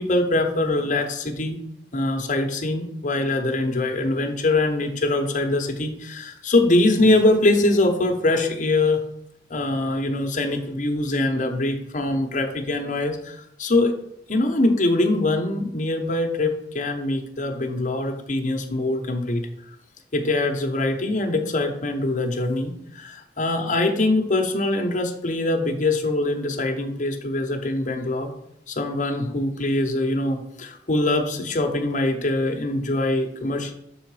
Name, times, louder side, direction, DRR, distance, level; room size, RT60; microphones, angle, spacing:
voice 1, 0.0-1.6 1.9-9.0 9.5-13.9 14.3-19.4 20.1-28.3 28.7-33.7, left 2 dB, 45° left, 3 dB, 0.9 m, -23 dB
6.3 x 3.8 x 4.8 m, 0.77 s
head